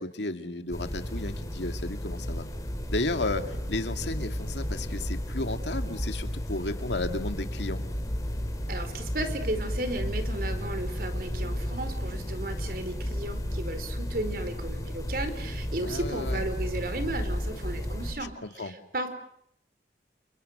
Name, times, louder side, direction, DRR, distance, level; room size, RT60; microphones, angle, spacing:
voice 1, 0.0-2.5 2.9-7.8 15.8-16.4 18.4-18.7, left 2 dB, 85° left, 7 dB, 2.4 m, -33 dB
sound 1, 0.7-18.1, equal, 20° left, 4.2 m, -33 dB
voice 2, 8.7-19.1, right 1 dB, 55° right, 9 dB, 4.5 m, -34 dB
30.0 x 30.0 x 6.7 m, 0.72 s
head